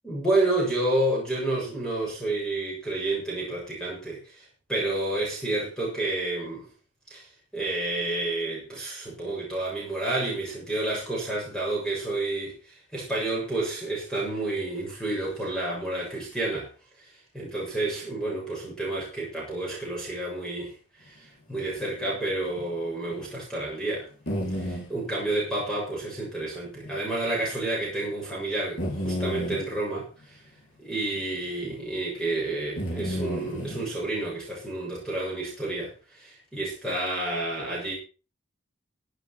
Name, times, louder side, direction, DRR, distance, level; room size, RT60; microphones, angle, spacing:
voice 1, 0.0-6.7 7.1-16.7 17.0-17.1 17.3-20.7 21.0-24.1 24.5-30.4 30.8-37.9, right 2 dB, 5° left, -4 dB, 6.8 m, -30 dB
sound 1, 22.6-22.7 23.1-23.2 24.3-24.9 26.8-26.9 27.2-27.3 28.8-29.6 31.7-31.8 32.8-33.9, equal, 65° left, 4.9 m, -31 dB
15.5 x 8.4 x 5.8 m, 0.36 s
head